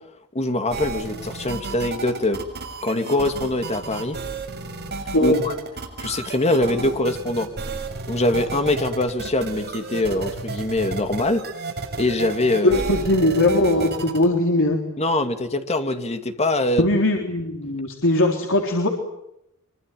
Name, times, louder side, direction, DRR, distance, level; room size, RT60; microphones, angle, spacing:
voice 1, 0.3-2.4 2.8-4.2 5.2-5.5 6.0-7.5 8.1-11.4 12.0-12.8 15.0-16.9, left 1 dB, 30° left, 7 dB, 2.5 m, -23 dB
sound 1, 0.7-14.2, right 3 dB, 50° right, 7.1 m, -32 dB
voice 2, 12.6-14.8 16.8-18.9, left 1 dB, 60° left, 2 dB, 3.8 m, -20 dB
25.0 x 25.0 x 9.3 m, 0.82 s
head